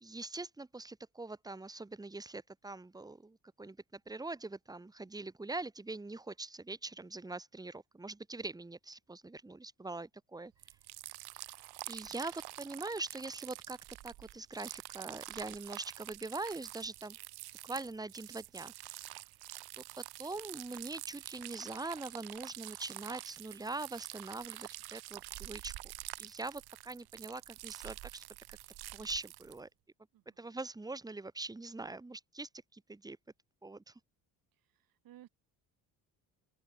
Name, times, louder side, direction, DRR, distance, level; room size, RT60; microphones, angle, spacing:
voice 1, 0.0-10.5 11.9-17.2 17.6-19.1 19.8-25.7 26.2-28.2 28.9-29.7 30.4-33.2 33.6-33.9, right 2 dB, 10° right, 2.0 m, -43 dB
sound 1, 10.6-29.6, right 17 dB, 80° right, 3.9 m, -47 dB
voice 2, 30.1-30.5 34.5-35.3, right 13 dB, 65° right, 7.9 m, -59 dB
open air
cardioid pair, 135°, 38 cm